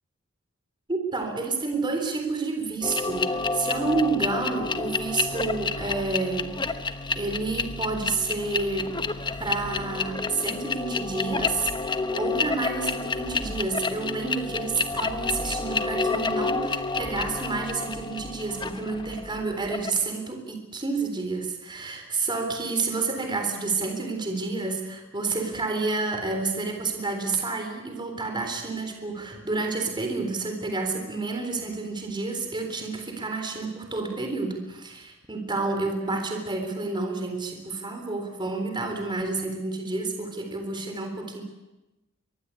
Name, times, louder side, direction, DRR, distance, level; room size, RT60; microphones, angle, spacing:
voice 1, 0.9-6.6 7.2-9.0 9.4-41.4, right 3 dB, 20° right, 4 dB, 3.7 m, -29 dB
sound 1, 2.8-20.0, left 3 dB, 20° left, 1.1 m, -29 dB
23.5 x 23.0 x 8.4 m, 1.0 s
head